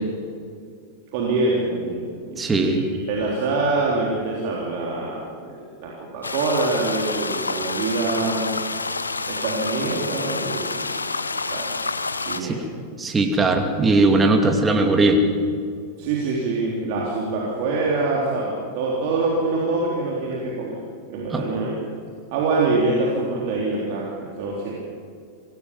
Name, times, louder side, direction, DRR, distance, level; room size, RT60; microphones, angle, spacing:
voice 1, 1.1-8.6 9.3-11.0 11.5-11.8 12.2-12.6 16.0-20.8 21.1-21.7 22.3-24.8, right 3 dB, 45° right, -4 dB, 3.8 m, -25 dB
voice 2, 2.4-2.8 12.4-12.6 13.0-15.2 21.3-21.5, right 2 dB, 15° right, 4 dB, 2.6 m, -19 dB
sound 1, 6.2-12.4, left 3 dB, 80° left, 0.9 m, -28 dB
26.0 x 17.0 x 7.4 m, 2.3 s
figure-of-eight pair, 90°, 0 cm